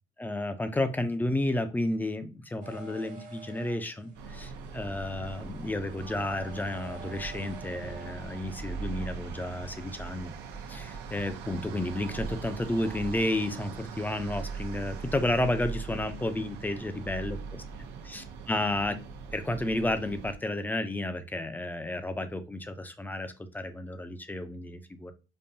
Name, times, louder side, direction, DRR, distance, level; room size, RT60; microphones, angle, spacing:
voice 1, 0.2-10.3 10.7-17.6 18.0-19.0 19.3-25.1, left 1 dB, 10° left, 9 dB, 0.5 m, -32 dB
sound 1, 2.6-8.5, right 4 dB, 50° right, 1.0 m, -49 dB
sound 2, 4.1-20.3, right 5 dB, 80° right, 0.7 m, -41 dB
5.3 x 2.3 x 2.7 m, 0.31 s
cardioid pair, 110°, 17 cm